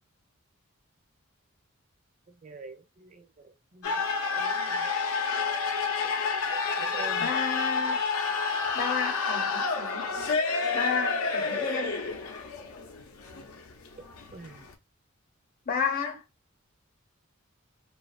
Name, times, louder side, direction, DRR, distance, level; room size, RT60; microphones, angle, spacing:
voice 1, 2.4-4.9 6.7-7.3 14.3-14.7, right 3 dB, 35° right, 0.5 m, -46 dB
sound 1, 3.8-14.7, left 4 dB, 85° left, 0.5 m, -29 dB
voice 2, 7.2-8.0 8.7-10.1 10.7-11.9 15.7-16.2, left 6 dB, 40° left, 0.6 m, -32 dB
2.7 x 2.3 x 2.3 m
head